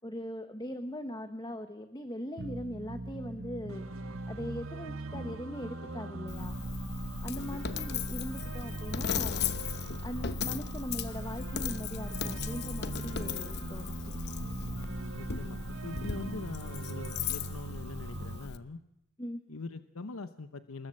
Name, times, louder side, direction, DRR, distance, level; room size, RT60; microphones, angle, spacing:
voice 1, 0.0-6.6 7.2-9.6 10.0-14.1 19.2-19.4, equal, 20° left, 9 dB, 1.1 m, -40 dB
sound 1, 2.4-18.4, right 2 dB, 55° right, 1.5 m, -41 dB
sound 2, 3.7-18.5, right 4 dB, 70° right, 1.7 m, -50 dB
Coin (dropping), 6.3-18.6, left 5 dB, 50° left, 1.0 m, -37 dB
voice 2, 7.3-7.8 15.1-18.8 19.5-20.9, left 3 dB, 75° left, 11 dB, 0.9 m, -43 dB
27.0 x 21.0 x 7.8 m, 0.81 s
head